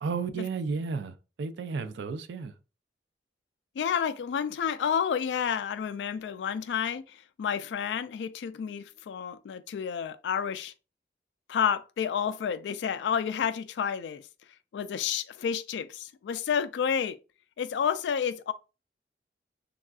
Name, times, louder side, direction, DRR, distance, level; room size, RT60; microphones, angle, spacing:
voice 1, 0.0-2.5, right 5 dB, 85° right, 0.4 m, -33 dB
voice 2, 3.8-10.7 11.5-14.2 14.7-17.2 17.6-18.5, left 7 dB, 90° left, 0.3 m, -30 dB
3.5 x 2.3 x 2.3 m
head